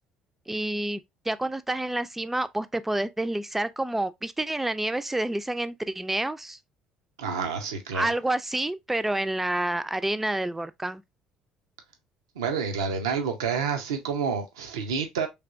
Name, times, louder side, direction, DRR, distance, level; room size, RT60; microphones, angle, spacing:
voice 1, 0.5-6.6 7.9-11.0, right 1 dB, 10° right, 0.4 m, -28 dB
voice 2, 7.2-8.0 12.4-15.3, right 6 dB, 85° right, 0.6 m, -29 dB
3.4 x 2.9 x 2.4 m
hypercardioid pair, 65°, 2 cm